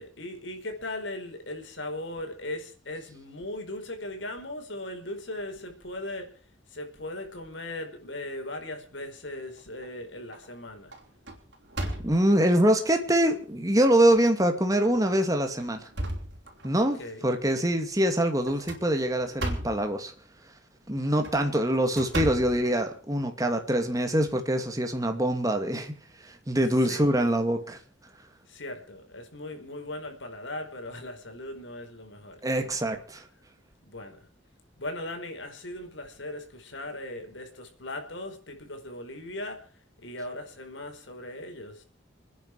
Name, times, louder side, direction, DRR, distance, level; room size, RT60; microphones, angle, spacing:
voice 1, 0.0-6.3 6.7-10.9 16.8-17.3 26.8-27.0 28.5-32.4 33.8-34.3 34.8-39.6 40.0-41.8, left 1 dB, 75° left, 4 dB, 5.0 m, -38 dB
sound 1, 9.3-9.9 10.3-10.6 10.9-12.5 13.2-13.3 13.8-13.9 14.8-15.0 15.5-16.9 18.4-19.9 21.0-23.3, right 1 dB, 65° right, 4.5 m, -36 dB
voice 2, 12.0-15.9 16.6-20.1 20.9-25.9 26.5-27.8 32.4-33.2, right 1 dB, 20° right, 5 dB, 2.4 m, -24 dB
28.5 x 10.0 x 4.8 m, 0.41 s
head